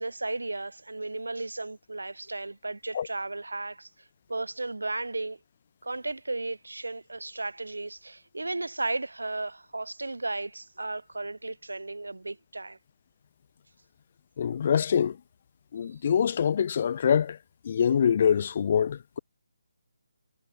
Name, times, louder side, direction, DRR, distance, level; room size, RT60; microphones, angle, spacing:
voice 1, 0.0-3.9 4.3-5.4 5.8-12.8, right 2 dB, 80° right, 4.8 m, -34 dB
voice 2, 14.4-15.2 15.7-17.4 17.6-19.2, left 8 dB, 40° left, 2.1 m, -24 dB
figure-of-eight pair, 150°, 0 cm